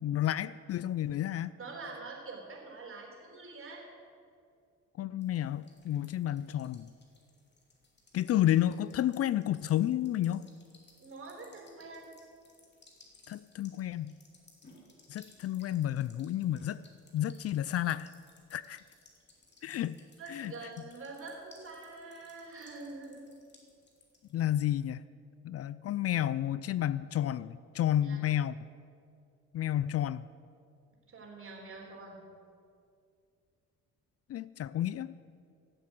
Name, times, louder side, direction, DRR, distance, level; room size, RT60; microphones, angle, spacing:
voice 1, 0.0-1.6 5.0-6.9 8.1-10.4 13.3-14.1 15.1-16.8 17.1-18.1 18.5-18.8 19.6-20.0 20.3-20.5 24.3-25.0 25.4-28.6 29.5-30.3 34.3-35.1, left 12 dB, 55° left, 17 dB, 0.4 m, -31 dB
voice 2, 1.6-3.8 11.0-12.1 20.2-23.4 28.0-28.2 31.1-32.2, right 3 dB, 45° right, 0 dB, 3.8 m, -45 dB
sound 1, 5.2-24.3, left 2 dB, 35° left, 2.8 m, -62 dB
15.5 x 7.6 x 7.8 m, 2.4 s
cardioid pair, 90°, 30 cm